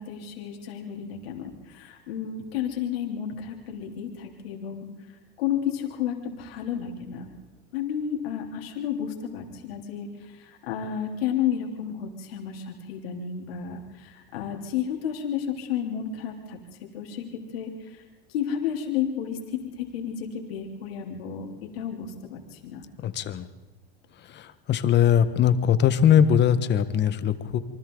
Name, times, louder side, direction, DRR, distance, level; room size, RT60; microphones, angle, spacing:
voice 1, 0.0-4.9 5.4-7.3 7.7-10.1 10.4-16.6 16.9-17.3 17.5-17.7 18.3-22.8, left 8 dB, 80° left, 1 dB, 3.5 m, -31 dB
voice 2, 23.0-23.5 24.2-27.6, left 9 dB, 35° left, 11 dB, 1.5 m, -21 dB
28.0 x 24.0 x 4.0 m, 1.2 s
supercardioid pair, 115°, 29 cm